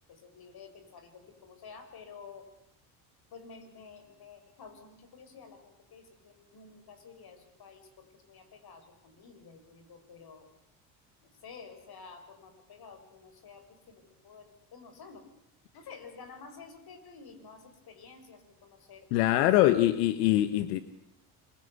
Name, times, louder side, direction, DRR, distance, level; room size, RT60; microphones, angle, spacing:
voice 1, 0.1-2.5 3.3-10.5 11.2-15.3 15.7-19.4, left 5 dB, 50° left, 8 dB, 6.6 m, -51 dB
voice 2, 19.1-20.8, left 14 dB, 85° left, 12 dB, 1.3 m, -23 dB
26.5 x 23.0 x 8.3 m, 0.78 s
supercardioid pair, 80°, 47 cm